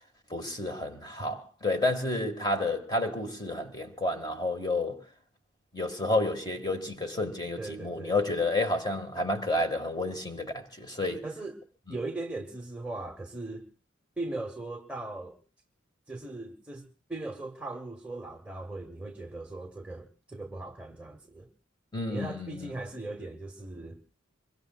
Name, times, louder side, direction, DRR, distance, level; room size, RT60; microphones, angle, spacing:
voice 1, 0.3-5.0 5.7-11.2 21.9-22.7, left 2 dB, 20° left, 1.6 m, -30 dB
voice 2, 7.6-8.2 11.2-11.6 11.9-13.7 14.2-15.4 16.1-21.5 22.1-24.0, right 2 dB, 5° right, 1.0 m, -39 dB
25.0 x 22.5 x 2.3 m
head